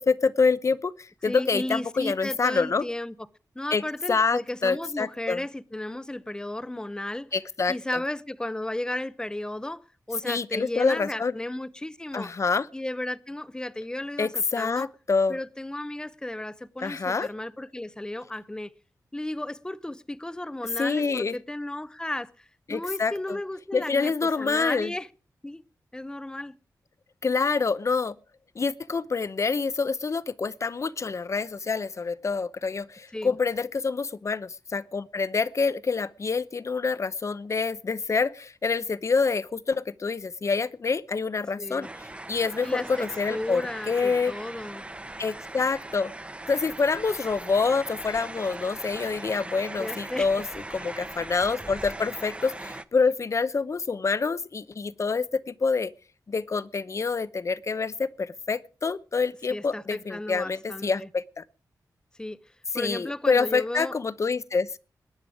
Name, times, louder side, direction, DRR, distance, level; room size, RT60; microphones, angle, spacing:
voice 1, 0.0-2.8 3.7-3.8 4.1-5.4 7.3-8.0 10.2-11.3 12.1-12.7 14.2-15.4 16.8-17.3 20.8-21.3 22.7-23.4 23.7-24.9 27.2-28.1 28.6-41.9 42.3-44.3 45.2-46.1 46.5-50.4 50.7-55.9 56.3-61.4 62.7-64.7, left 4 dB, 45° left, 0.8 m, -26 dB
voice 2, 1.3-3.1 3.5-7.3 7.7-9.8 10.1-12.3 12.7-14.9 15.3-18.7 19.1-25.1 25.4-25.6 25.9-26.5 33.1-33.3 41.6-41.9 42.6-44.8 49.8-50.3 59.5-61.1 62.2-62.4 62.7-63.9, left 1 dB, 10° left, 0.7 m, -34 dB
sound 1, 41.8-52.8, right 2 dB, 15° right, 0.9 m, -40 dB
21.5 x 10.0 x 4.9 m
wide cardioid pair, 100°, 7 cm